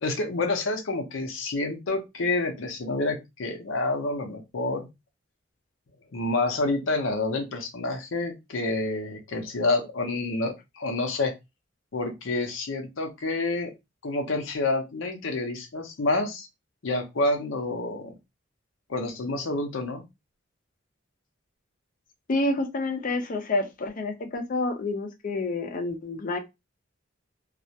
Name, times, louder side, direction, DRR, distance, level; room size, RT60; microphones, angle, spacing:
voice 1, 0.0-4.9 6.1-11.3 11.9-13.7 14.0-16.5 16.8-18.1 18.9-20.0, left 2 dB, 85° left, 4 dB, 0.6 m, -28 dB
voice 2, 22.3-26.4, left 2 dB, 45° left, 5 dB, 0.5 m, -28 dB
2.3 x 2.1 x 2.7 m, 0.22 s
head